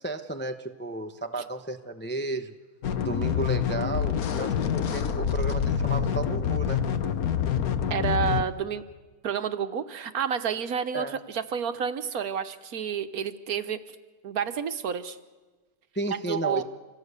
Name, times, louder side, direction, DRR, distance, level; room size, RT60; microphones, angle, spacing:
voice 1, 0.0-2.5 3.0-6.9 10.9-11.2 15.9-16.6, right 2 dB, 10° left, 7 dB, 0.7 m, -33 dB
sound 1, 2.8-8.4, left 8 dB, 70° left, 1.5 m, -26 dB
voice 2, 7.9-8.8 9.2-13.8 14.2-15.2 16.2-16.6, right 7 dB, 70° right, 11 dB, 1.4 m, -29 dB
27.0 x 17.5 x 8.2 m, 1.3 s
omnidirectional pair, 1.7 m